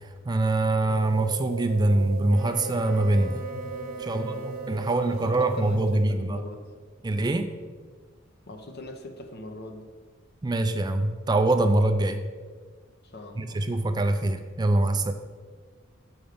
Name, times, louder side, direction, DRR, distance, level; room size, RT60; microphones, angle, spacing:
voice 1, 0.3-3.4 4.0-6.4 7.0-7.5 10.4-12.2 13.4-15.1, right 2 dB, 20° right, 7 dB, 0.4 m, -24 dB
sound 1, 0.9-6.3, right 4 dB, 80° right, 0.6 m, -37 dB
Wind instrument woodwind instrument, 2.3-5.9, left 1 dB, 45° right, 0.9 m, -44 dB
voice 2, 4.0-4.5 4.8-6.7 8.5-9.9 13.0-13.6, left 2 dB, 55° left, 5 dB, 0.9 m, -42 dB
7.0 x 5.4 x 5.0 m, 1.5 s
head